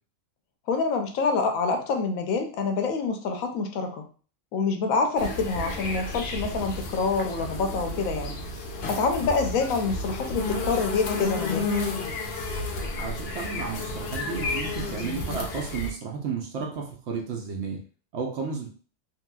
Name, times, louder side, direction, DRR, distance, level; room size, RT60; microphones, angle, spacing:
voice 1, 0.7-4.0 4.5-8.4 8.9-11.7, left 4 dB, 85° left, 5 dB, 1.0 m, -26 dB
sound 1, 5.2-15.9, left 2 dB, 60° left, 0.7 m, -31 dB
voice 2, 12.9-17.8 18.1-18.7, right 5 dB, 65° right, 1 dB, 0.8 m, -33 dB
3.0 x 2.8 x 2.2 m, 0.40 s
omnidirectional pair, 1.4 m